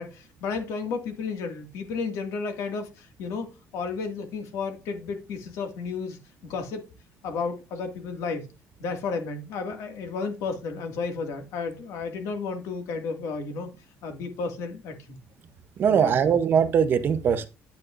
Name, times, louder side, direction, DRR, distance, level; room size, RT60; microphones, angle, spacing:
voice 1, 0.0-6.9 7.2-8.5 8.8-13.7 14.0-15.2 15.9-16.4, left 4 dB, 75° left, 1.9 m, -33 dB
voice 2, 15.8-17.5, right 7 dB, 40° right, 0.7 m, -21 dB
9.3 x 8.4 x 2.5 m
cardioid pair, 160°, 5 cm